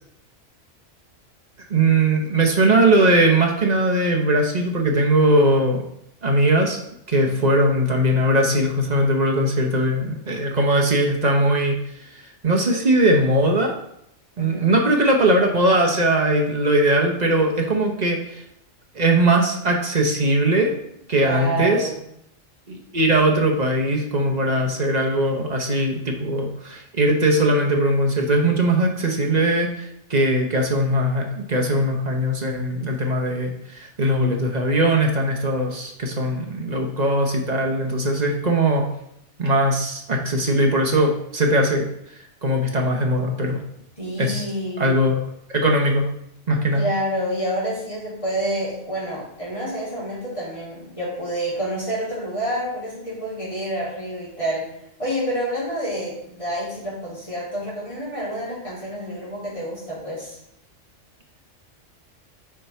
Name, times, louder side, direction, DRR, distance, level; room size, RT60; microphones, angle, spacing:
voice 1, 1.7-5.8 6.2-6.8 7.1-11.8 12.1-13.8 14.4-18.4 18.9-20.7 21.1-21.9 22.7-38.9 39.4-41.9 42.4-43.6 44.2-44.4 44.8-45.2 45.5-46.0 46.5-46.9, right 1 dB, 35° right, 1 dB, 1.0 m, -20 dB
voice 2, 7.2-7.6 14.4-14.7 21.2-22.0 44.0-45.0 46.7-54.7 55.0-60.4, right 1 dB, 25° left, -9 dB, 3.0 m, -28 dB
5.6 x 5.0 x 4.3 m, 0.75 s
omnidirectional pair, 1.3 m